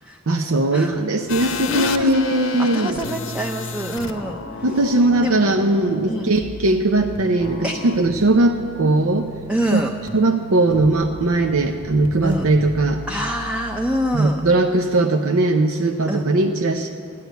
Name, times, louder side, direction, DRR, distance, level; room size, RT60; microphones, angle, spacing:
voice 1, 0.3-3.0 4.6-9.3 9.7-9.8 10.1-13.0 14.1-16.9, right 2 dB, 75° right, 4 dB, 0.7 m, -19 dB
sound 1, 1.3-14.2, left 4 dB, 65° left, 0.8 m, -34 dB
voice 2, 1.7-2.2 2.6-4.9 5.2-5.5 6.0-6.3 7.6-7.9 9.5-9.9 12.2-12.5 13.1-14.4 16.1-16.2, equal, 5° right, 2 dB, 0.6 m, -26 dB
12.5 x 9.4 x 9.2 m, 2.3 s
head